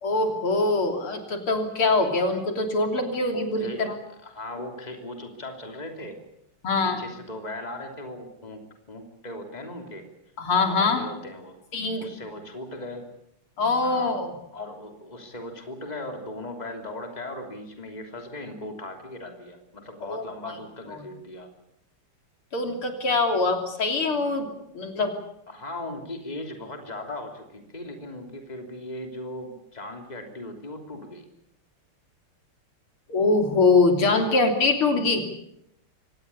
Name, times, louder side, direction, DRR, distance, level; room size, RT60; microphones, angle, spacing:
voice 1, 0.0-4.0 6.6-7.1 10.4-11.1 11.7-12.1 13.6-14.3 20.1-20.5 22.5-25.1 33.1-35.2, left 3 dB, 75° left, 5 dB, 4.0 m, -23 dB
voice 2, 3.3-3.8 4.2-6.2 6.8-10.1 10.6-11.6 12.0-13.1 13.8-14.2 14.5-21.5 25.5-31.3 34.1-34.3, left 1 dB, 20° left, 4 dB, 3.1 m, -38 dB
24.5 x 19.5 x 8.4 m, 0.77 s
omnidirectional pair, 2.4 m